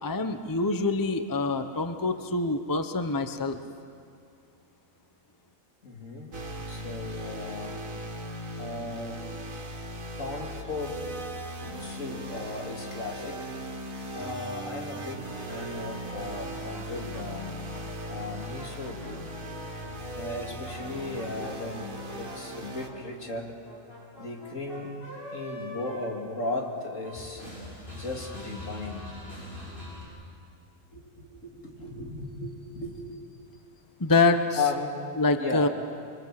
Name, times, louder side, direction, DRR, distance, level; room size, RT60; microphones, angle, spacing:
voice 1, 0.0-3.6 34.0-34.6 35.2-35.7, left 3 dB, 20° left, 8 dB, 0.9 m, -25 dB
voice 2, 5.8-6.4 6.7-7.8 8.6-9.2 10.2-11.0 11.8-13.4 14.1-17.5 18.1-19.3 20.1-23.6 24.2-25.0 25.3-27.4 27.9-29.1 30.9-33.2 34.5-35.0 35.4-35.7, left 3 dB, 70° left, 1 dB, 3.0 m, -36 dB
sound 1, 6.3-22.9, right 1 dB, 90° right, 2.4 m, -38 dB
sound 2, 14.8-20.0 20.5-26.8 27.0-30.0, equal, 45° left, 7.6 m, -44 dB
26.5 x 24.0 x 7.6 m, 2.3 s
omnidirectional pair, 1.4 m